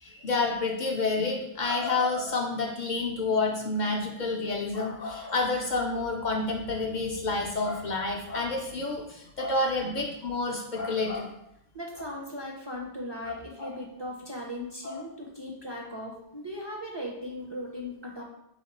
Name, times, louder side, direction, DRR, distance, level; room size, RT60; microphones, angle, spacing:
voice 1, 0.0-11.3 13.3-13.7 14.8-15.0, left 3 dB, 55° left, 0 dB, 0.6 m, -29 dB
voice 2, 11.7-18.2, left 1 dB, 35° right, -2 dB, 0.5 m, -38 dB
3.8 x 2.8 x 4.0 m, 0.79 s
omnidirectional pair, 1.0 m